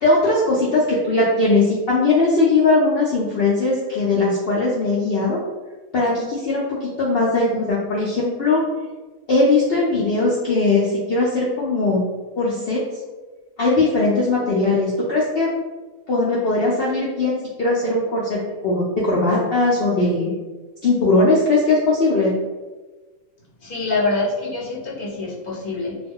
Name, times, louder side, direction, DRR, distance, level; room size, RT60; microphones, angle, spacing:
voice 1, 0.0-5.4 5.9-8.6 9.3-12.0 12.4-12.8 13.6-15.5 16.1-20.3 20.8-22.3, left 2 dB, 70° left, -5 dB, 0.5 m, -19 dB
voice 2, 23.6-26.0, left 3 dB, 45° left, -6 dB, 0.8 m, -25 dB
2.2 x 2.2 x 3.4 m, 1.2 s
omnidirectional pair, 1.5 m